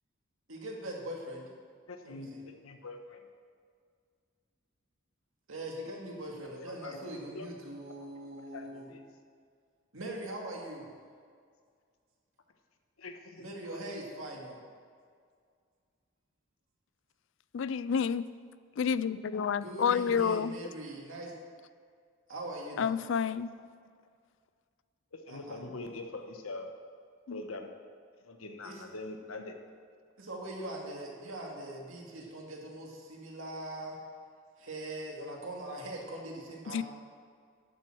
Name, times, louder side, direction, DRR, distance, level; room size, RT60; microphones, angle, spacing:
voice 1, 0.5-1.5 2.0-2.4 5.5-8.9 9.9-10.9 13.4-14.6 19.6-21.4 22.3-23.0 25.3-25.6 28.6-28.8 30.2-34.0 34.6-36.8, right 1 dB, 75° right, -1 dB, 2.2 m, -41 dB
voice 2, 1.9-3.3 6.4-7.0 7.3-7.5 8.4-9.0 13.0-13.8 23.6-23.7 25.1-26.7 27.3-27.7 28.2-29.6, left 2 dB, 85° left, 5 dB, 1.2 m, -44 dB
voice 3, 17.5-18.3 18.8-20.6 22.8-23.5 27.3-27.4 36.7-36.8, left 7 dB, 65° left, 16 dB, 0.3 m, -29 dB
11.5 x 7.7 x 6.1 m, 2.1 s
head